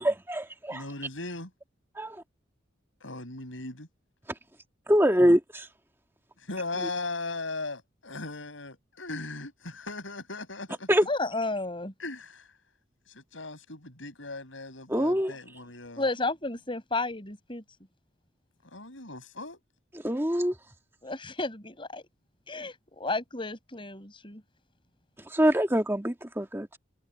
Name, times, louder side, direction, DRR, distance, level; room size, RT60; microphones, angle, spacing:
voice 1, 0.0-0.8 2.0-2.2 4.9-5.7 10.9-11.0 14.9-15.3 19.9-20.5 25.3-26.8, equal, 10° right, 2.0 m, -24 dB
voice 2, 0.7-1.5 3.0-3.9 6.5-10.9 12.0-12.4 13.3-16.0 18.7-19.6, left 3 dB, 85° left, 7.0 m, -38 dB
voice 3, 11.1-11.9 16.0-17.6 21.0-22.0 22.5-24.4, left 2 dB, 25° left, 5.9 m, -32 dB
head